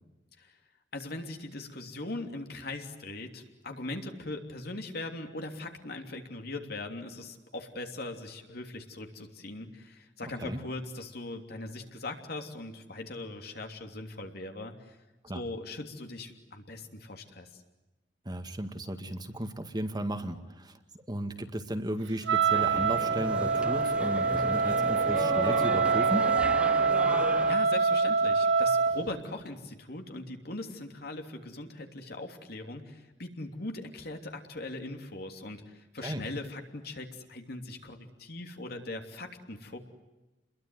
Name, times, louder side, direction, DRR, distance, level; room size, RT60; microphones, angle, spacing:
voice 1, 0.9-15.0 15.3-17.6 27.5-39.8, left 2 dB, 60° left, 4 dB, 3.1 m, -40 dB
voice 2, 18.3-20.7 21.1-26.3 36.0-36.2, right 1 dB, 25° right, 7 dB, 2.0 m, -35 dB
Wind instrument woodwind instrument, 22.3-29.1, right 5 dB, 85° right, 1.4 m, -25 dB
sound 1, 22.5-27.5, right 1 dB, 5° right, 1.1 m, -35 dB
29.0 x 22.0 x 9.3 m, 1.1 s
head